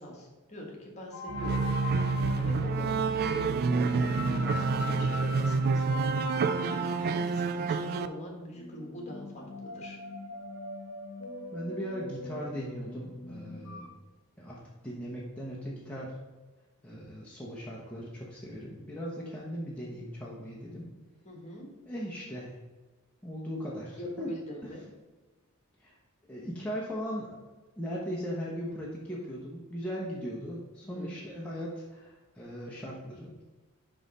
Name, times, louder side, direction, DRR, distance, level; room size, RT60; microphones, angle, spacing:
voice 1, 0.0-1.6 2.3-10.0 21.2-21.7 23.9-24.9 30.8-31.2, left 1 dB, 30° left, -1 dB, 1.6 m, -44 dB
sound 1, 1.1-13.9, left 2 dB, 70° left, 0.9 m, -41 dB
sound 2, 1.3-8.1, right 4 dB, 45° right, 0.3 m, -28 dB
voice 2, 11.5-13.9 14.4-16.2 16.8-20.9 21.9-22.5 23.2-24.3 25.8-26.0 26.3-27.3 27.8-33.3, equal, 5° left, -6 dB, 0.9 m, -38 dB
5.5 x 5.3 x 4.1 m, 1.3 s
head